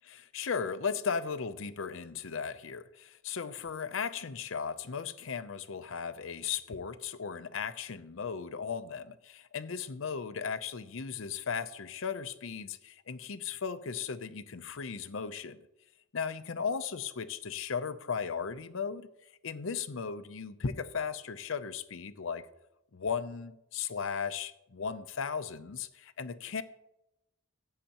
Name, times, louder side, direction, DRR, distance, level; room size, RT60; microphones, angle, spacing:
voice 1, 0.0-15.6 16.1-19.1 19.4-22.5 22.9-26.6, left 6 dB, 70° left, 12 dB, 0.6 m, -36 dB
15.5 x 7.5 x 2.9 m, 0.86 s
head